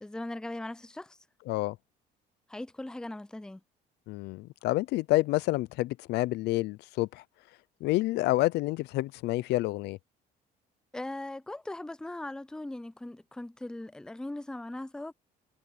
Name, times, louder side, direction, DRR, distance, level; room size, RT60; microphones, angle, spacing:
voice 1, 0.0-1.2 2.5-3.6 10.9-15.1, left 1 dB, 5° left, 0.5 m, -39 dB
voice 2, 4.1-7.2 7.8-10.0, left 18 dB, 80° left, 0.6 m, -28 dB
cardioid pair, 110°, 17 cm